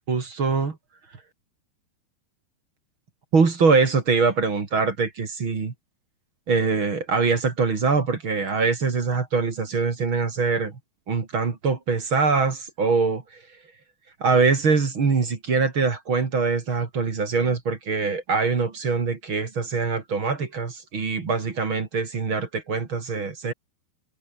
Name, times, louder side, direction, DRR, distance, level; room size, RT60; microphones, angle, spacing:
voice 1, 0.1-0.8 3.3-5.7 6.5-10.8 11.1-13.2 14.2-23.5, right 4 dB, 35° right, 3.0 m, -23 dB
omnidirectional pair, 5.0 m